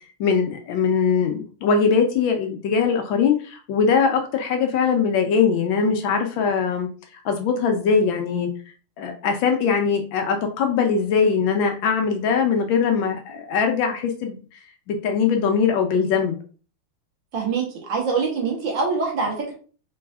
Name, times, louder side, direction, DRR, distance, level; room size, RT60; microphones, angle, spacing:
voice 1, 0.2-6.9 7.2-8.5 9.0-14.4 14.9-16.3, left 6 dB, 75° left, 4 dB, 1.3 m, -21 dB
voice 2, 17.3-19.5, right 4 dB, 65° right, -1 dB, 1.7 m, -24 dB
3.9 x 3.4 x 2.3 m, 0.38 s
omnidirectional pair, 2.3 m